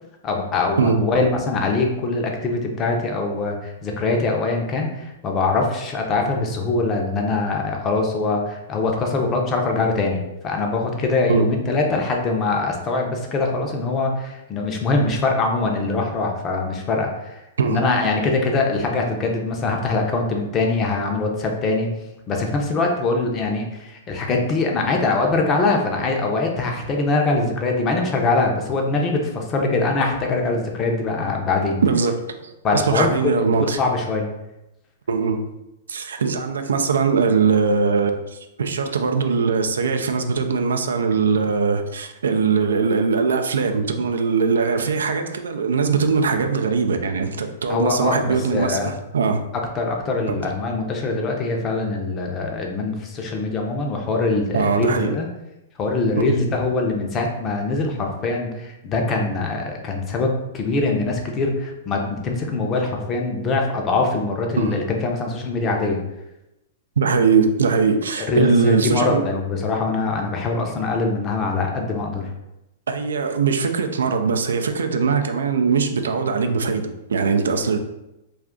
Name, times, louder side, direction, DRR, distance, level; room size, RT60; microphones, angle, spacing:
voice 1, 0.2-21.9 22.3-31.8 32.6-34.3 47.7-48.2 48.5-48.9 49.7-55.3 55.8-66.0 68.2-72.3, left 3 dB, 30° left, 2 dB, 0.6 m, -23 dB
voice 2, 31.8-33.8 35.1-35.4 35.9-49.5 50.3-50.4 54.5-55.2 56.2-56.4 64.6-64.8 67.0-69.2 72.9-77.8, right 5 dB, 85° right, 6 dB, 0.3 m, -21 dB
2.4 x 2.4 x 3.6 m, 0.92 s
hypercardioid pair, 120°, 0 cm